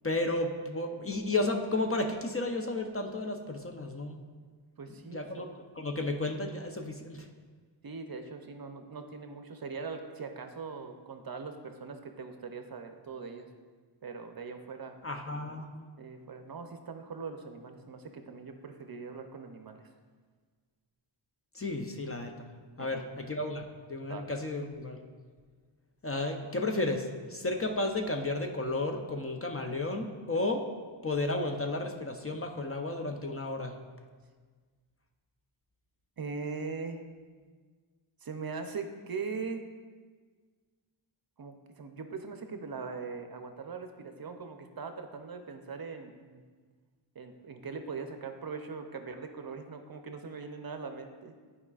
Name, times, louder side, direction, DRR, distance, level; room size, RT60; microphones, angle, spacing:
voice 1, 0.0-4.2 5.1-5.5 5.8-7.3 15.0-15.8 21.5-22.3 22.8-25.0 26.0-30.6 31.0-33.8, left 2 dB, 30° left, 3 dB, 0.5 m, -33 dB
voice 2, 4.8-5.4 7.8-13.5 14.0-14.9 16.0-19.9 22.8-23.1 24.1-24.3 36.2-37.0 38.2-39.6 41.4-46.4 47.2-51.3, right 4 dB, 50° right, 6 dB, 0.6 m, -41 dB
12.0 x 4.8 x 2.4 m, 1.5 s
wide cardioid pair, 110°, 49 cm